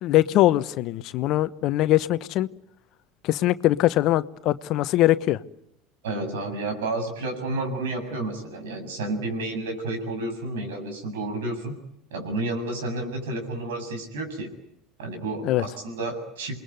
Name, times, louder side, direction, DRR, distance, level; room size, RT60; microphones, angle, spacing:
voice 1, 0.0-2.5 3.2-5.4 15.4-15.6, left 15 dB, 55° left, 14 dB, 1.1 m, -22 dB
voice 2, 6.0-11.7 12.1-14.5 15.0-16.5, right 2 dB, 75° right, 6 dB, 7.2 m, -31 dB
28.5 x 21.5 x 9.5 m, 0.80 s
hypercardioid pair, 75°, 0 cm